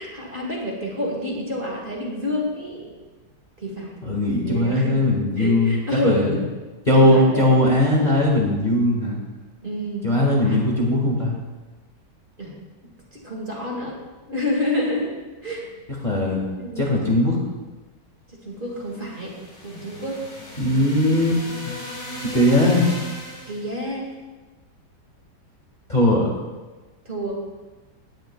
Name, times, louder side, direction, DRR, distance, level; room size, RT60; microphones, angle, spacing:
voice 1, 0.0-3.0 3.6-4.0 4.4-5.0 5.4-6.4 6.9-7.5 9.6-10.1 10.4-10.6 12.4-12.6 13.1-14.0 14.3-15.1 15.4-15.7 16.6-16.9 18.5-19.3 19.6-20.2 23.5-24.1 27.1-27.3, left 1 dB, 30° right, -2 dB, 2.0 m, -28 dB
voice 2, 4.0-6.4 6.9-9.2 10.0-11.4 16.0-16.4 16.8-17.4 20.6-21.7 22.2-22.9 25.9-26.3, left 1 dB, 25° left, -3 dB, 1.7 m, -19 dB
sound 1, 18.8-23.8, equal, 75° left, 5.1 m, -37 dB
17.5 x 10.5 x 2.3 m, 1.2 s
omnidirectional pair, 1.9 m